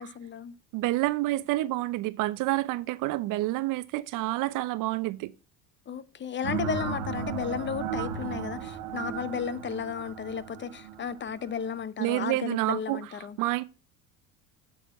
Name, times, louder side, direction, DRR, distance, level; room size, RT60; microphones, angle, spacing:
voice 1, 0.0-0.5 5.9-13.4, left 7 dB, 30° left, 0.8 m, -34 dB
voice 2, 0.7-5.3 12.0-13.0 13.4-13.6, right 18 dB, 60° right, 0.8 m, -28 dB
sound 1, 6.4-11.8, right 7 dB, 90° right, 1.5 m, -35 dB
8.3 x 7.1 x 5.7 m
supercardioid pair, 100°, 35 cm